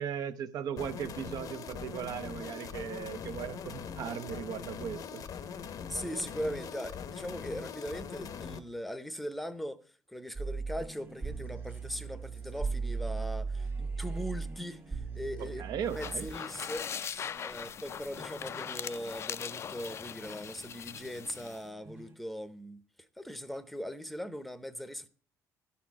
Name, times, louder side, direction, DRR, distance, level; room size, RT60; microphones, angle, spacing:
voice 1, 0.0-5.2 15.4-16.3, right 8 dB, 70° right, 0.6 m, -38 dB
sound 1, 0.8-8.6, left 7 dB, 60° left, 0.7 m, -42 dB
voice 2, 5.9-9.8 10.1-22.8 23.2-25.1, equal, ahead, 0.7 m, -40 dB
sound 2, 10.3-17.6 18.2-19.3 20.0-22.1, right 4 dB, 30° right, 0.8 m, -39 dB
sound 3, 15.8-21.6, left 8 dB, 40° left, 0.3 m, -40 dB
12.5 x 4.3 x 4.7 m
cardioid pair, 90°, 7 cm